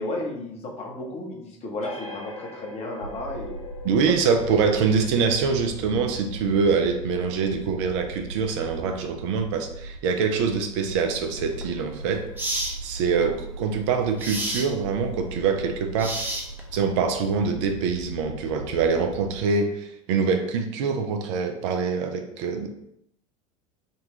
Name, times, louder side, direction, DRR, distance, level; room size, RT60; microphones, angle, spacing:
voice 1, 0.0-3.7 4.1-4.2, left 2 dB, 35° left, 0 dB, 0.9 m, -33 dB
sound 1, 1.8-9.0, left 4 dB, 90° left, 0.7 m, -44 dB
sound 2, 3.0-19.4, right 2 dB, 90° right, 1.0 m, -39 dB
voice 2, 3.8-12.3 12.8-16.4 16.7-22.7, right 5 dB, 55° right, 5 dB, 0.5 m, -24 dB
sound 3, 11.5-11.6 12.4-12.8 14.2-14.7 16.0-16.7, right 1 dB, 10° right, 0.7 m, -29 dB
3.8 x 2.3 x 2.9 m, 0.75 s
figure-of-eight pair, 75°, 18 cm